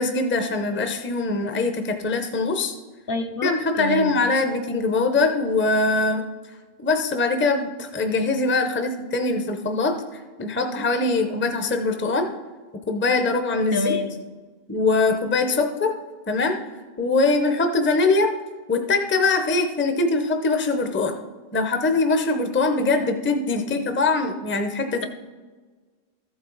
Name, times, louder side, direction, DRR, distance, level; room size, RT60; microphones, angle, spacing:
voice 1, 0.0-2.7 3.4-6.3 6.8-12.3 12.9-14.0 14.7-15.9 16.3-16.6 17.0-18.3 18.7-21.1 21.5-25.1, left 3 dB, 15° left, 5 dB, 0.6 m, -22 dB
voice 2, 3.1-3.5 3.8-4.1 13.7-14.1, left 3 dB, 65° left, 5 dB, 1.0 m, -25 dB
13.5 x 7.7 x 3.9 m, 1.4 s
omnidirectional pair, 1.0 m